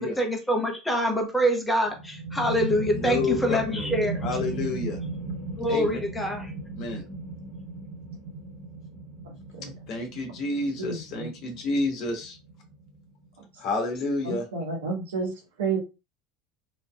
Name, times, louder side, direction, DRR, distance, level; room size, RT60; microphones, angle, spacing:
voice 1, 0.0-4.3 5.6-6.5, equal, 10° left, 2 dB, 1.0 m, -25 dB
sound 1, 1.8-13.2, right 3 dB, 40° right, 1.1 m, -36 dB
voice 2, 2.9-3.9 4.2-5.0 5.7-6.0 6.8-7.0 9.9-12.4 13.6-14.4, left 3 dB, 55° left, 3 dB, 1.1 m, -29 dB
voice 3, 10.8-11.3 14.2-15.3 15.6-15.8, right 4 dB, 85° right, 1 dB, 1.1 m, -30 dB
3.1 x 2.7 x 2.3 m, 0.28 s
hypercardioid pair, 85°, 0 cm